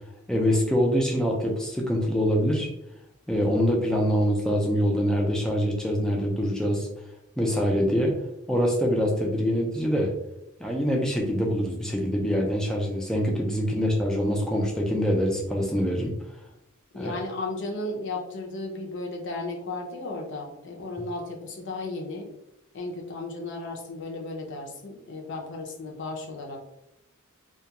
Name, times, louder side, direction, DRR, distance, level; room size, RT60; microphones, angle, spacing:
voice 1, 0.3-2.7 3.3-6.9 7.4-8.1 8.5-10.1 10.6-16.1 16.9-17.1, equal, 5° left, -1 dB, 0.4 m, -24 dB
voice 2, 16.9-22.3 22.7-26.7, left 2 dB, 55° left, 1 dB, 0.5 m, -34 dB
2.3 x 2.3 x 2.8 m, 0.83 s
head